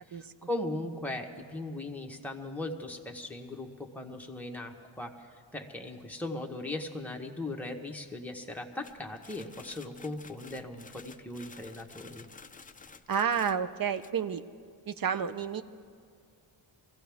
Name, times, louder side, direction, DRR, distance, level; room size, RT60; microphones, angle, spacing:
voice 1, 0.1-5.3 5.5-12.3, left 2 dB, 5° left, 1 dB, 1.2 m, -38 dB
sound 1, 8.8-14.1, left 5 dB, 20° left, 0.3 m, -52 dB
voice 2, 13.1-14.4 14.9-15.6, right 7 dB, 50° right, 11 dB, 0.6 m, -30 dB
24.0 x 16.0 x 3.5 m, 2.2 s
wide cardioid pair, 105°, 47 cm